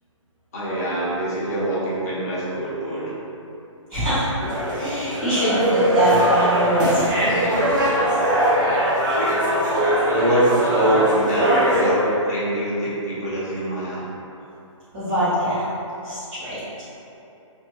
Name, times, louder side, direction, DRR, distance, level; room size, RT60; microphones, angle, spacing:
voice 1, 0.5-3.1 10.1-14.1, right 1 dB, 30° left, -9 dB, 0.7 m, -24 dB
voice 2, 3.9-4.3 4.7-7.5 14.9-15.7 16.0-16.8, equal, 20° right, -16 dB, 1.0 m, -23 dB
sound 1, 4.4-11.9, equal, 35° right, 0.6 m, -21 dB
2.5 x 2.2 x 3.0 m, 2.9 s
hypercardioid pair, 170°, 17 cm